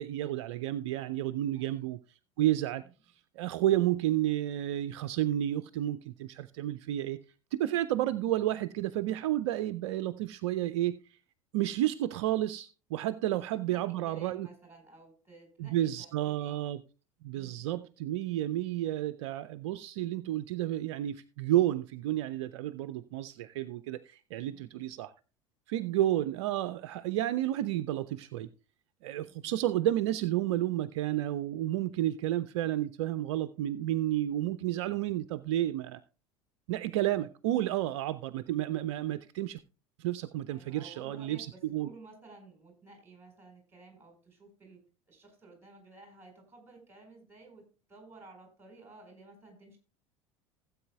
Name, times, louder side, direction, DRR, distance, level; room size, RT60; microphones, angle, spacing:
voice 1, 0.0-2.0 2.4-2.8 3.4-7.2 7.5-11.2 11.5-14.5 15.6-16.8 17.2-25.1 25.7-28.5 29.0-36.0 36.7-39.6 40.0-41.9, right 13 dB, 55° right, 0.4 m, -31 dB
voice 2, 1.5-1.9 2.8-2.9 13.3-13.4 13.7-16.6 17.3-17.9 24.5-24.9 29.2-29.6 40.5-49.8, right 3 dB, 15° right, 4.5 m, -54 dB
16.5 x 8.2 x 2.3 m
figure-of-eight pair, 70°, 17 cm